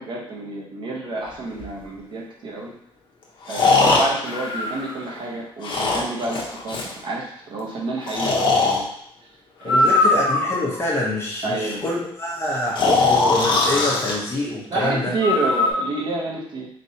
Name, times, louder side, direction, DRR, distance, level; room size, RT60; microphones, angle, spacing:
voice 1, 0.0-2.7 3.5-8.9 9.6-9.9 11.4-11.8 14.7-16.7, right 2 dB, 55° right, -2 dB, 1.0 m, -29 dB
Breathing, 1.6-1.7 3.5-5.2 5.6-6.9 8.1-8.8 9.6-10.8 12.8-14.1 15.2-15.7, left 3 dB, 55° left, 0.9 m, -20 dB
voice 2, 9.6-15.2, left 2 dB, 25° left, -5 dB, 1.0 m, -26 dB
4.2 x 3.2 x 2.8 m, 0.72 s
cardioid pair, 135°, 10 cm